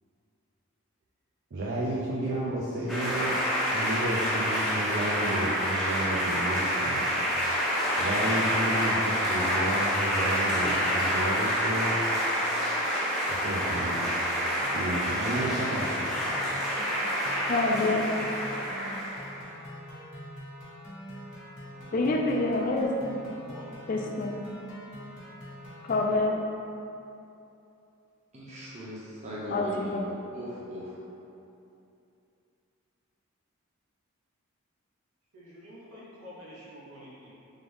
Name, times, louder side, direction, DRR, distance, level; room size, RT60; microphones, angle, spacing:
voice 1, 1.5-3.4 3.7-7.1 8.0-11.9 13.3-14.1 14.7-16.1, right 1 dB, 50° right, -4 dB, 0.4 m, -32 dB
sound 1, 2.9-19.3, equal, ahead, 0.8 m, -28 dB
sound 2, 14.6-26.1, equal, 70° left, 1.0 m, -44 dB
voice 2, 17.5-18.0 21.9-23.2 23.9-24.3 25.8-26.4 29.5-30.0, left 2 dB, 40° left, 1 dB, 0.3 m, -27 dB
voice 3, 23.5-23.9 35.3-37.3, equal, 85° right, -7 dB, 1.1 m, -48 dB
voice 4, 28.3-30.0 30.3-31.0, equal, 30° right, -7 dB, 0.8 m, -38 dB
3.7 x 3.5 x 3.5 m, 2.8 s
head